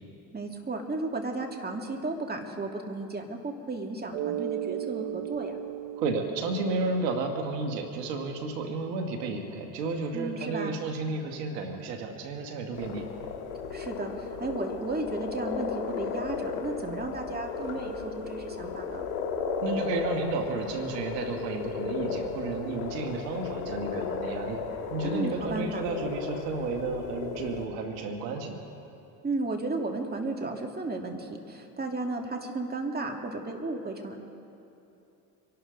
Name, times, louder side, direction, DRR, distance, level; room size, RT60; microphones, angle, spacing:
voice 1, 0.3-5.6 10.1-10.8 13.7-14.1 14.4-19.1 25.0-25.8 29.2-34.2, right 2 dB, 20° right, 2 dB, 2.3 m, -34 dB
Mallet percussion, 4.1-8.6, right 12 dB, 65° right, 0.8 m, -37 dB
voice 2, 6.0-13.0 19.6-24.6 24.9-28.6, right 3 dB, 85° right, 4 dB, 1.7 m, -32 dB
sound 1, 12.7-27.6, left 5 dB, 75° left, 2.5 m, -35 dB
26.0 x 12.0 x 3.9 m, 2.9 s
hypercardioid pair, 70°, 47 cm